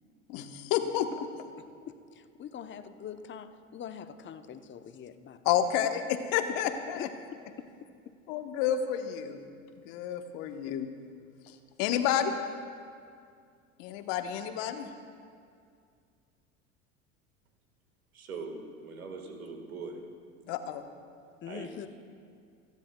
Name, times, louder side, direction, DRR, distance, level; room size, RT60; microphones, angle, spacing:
voice 1, 0.3-1.3 5.4-7.1 8.3-9.4 9.8-10.9 11.5-12.3 13.8-14.9 20.5-20.8, left 9 dB, 55° left, 7 dB, 1.1 m, -30 dB
voice 2, 1.6-5.6 6.9-7.1 7.6-7.7 21.4-21.9, left 8 dB, 30° left, 9 dB, 0.8 m, -44 dB
voice 3, 18.1-20.0 21.4-21.9, right 4 dB, 85° right, 4 dB, 1.7 m, -41 dB
28.0 x 10.5 x 2.3 m, 2.3 s
hypercardioid pair, 80°, 41 cm